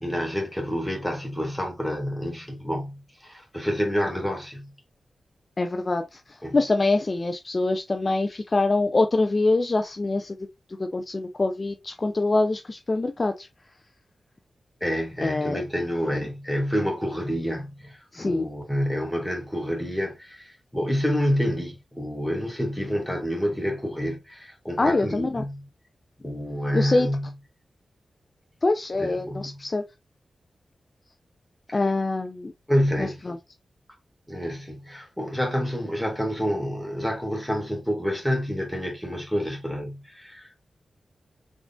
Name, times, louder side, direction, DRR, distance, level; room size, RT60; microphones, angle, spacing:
voice 1, 0.0-4.7 6.4-6.6 14.8-25.6 26.2-27.3 29.0-29.6 31.7-31.8 32.7-33.2 34.3-40.6, equal, ahead, 1.8 m, -28 dB
voice 2, 5.6-10.4 10.8-13.5 15.2-15.6 18.1-18.5 24.8-25.4 26.7-27.1 28.6-29.8 31.7-32.5 33.0-33.4, left 2 dB, 40° left, 0.4 m, -24 dB
3.7 x 3.7 x 2.3 m
cardioid pair, 65°, 0 cm